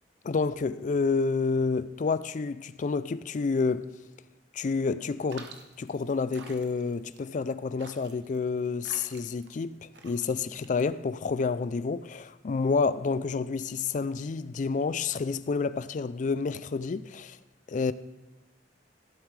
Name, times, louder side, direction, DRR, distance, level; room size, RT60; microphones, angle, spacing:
voice 1, 0.2-3.9 4.5-5.5 5.8-17.4 17.7-17.9, left 4 dB, 45° left, 0.4 m, -29 dB
sound 1, 5.3-11.3, right 4 dB, 80° right, 1.0 m, -49 dB
15.5 x 8.1 x 3.3 m
head